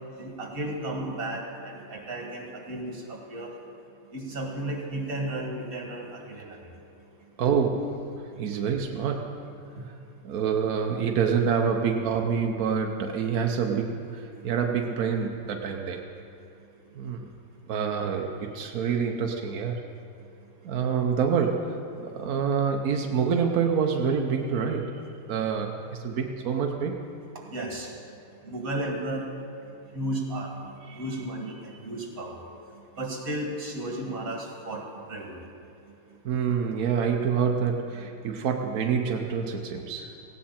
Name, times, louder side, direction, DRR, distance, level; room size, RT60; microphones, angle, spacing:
voice 1, 0.2-3.5 4.1-6.6 9.7-9.8 27.5-27.9 28.4-29.2 29.9-32.4 33.0-35.4, right 1 dB, 40° right, 0 dB, 2.6 m, -34 dB
voice 2, 7.4-9.5 9.8-10.0 10.2-16.0 16.9-17.3 17.7-19.8 20.6-27.0 30.8-31.0 36.2-40.1, right 6 dB, 60° right, 2 dB, 0.9 m, -27 dB
18.0 x 16.5 x 4.3 m, 2.6 s
omnidirectional pair, 2.4 m